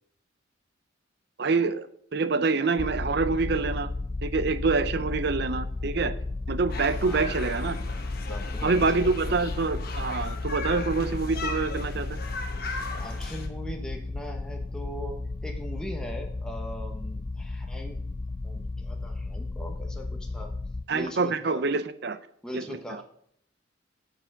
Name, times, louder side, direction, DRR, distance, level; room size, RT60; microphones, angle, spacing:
voice 1, 1.4-1.9 2.1-3.9 4.2-6.1 6.5-7.8 8.6-12.2 20.9-22.2 22.5-23.0, right 4 dB, 55° right, 13 dB, 0.6 m, -26 dB
sound 1, 2.8-20.8, left 2 dB, 20° left, 0.3 m, -34 dB
sound 2, 6.7-13.5, left 3 dB, 50° left, 1.1 m, -38 dB
voice 2, 7.0-7.4 8.3-9.2 13.0-15.2 15.4-18.0 18.4-20.5 20.9-21.6 22.4-23.0, equal, 5° left, 1 dB, 0.9 m, -40 dB
6.8 x 6.7 x 5.8 m, 0.67 s
head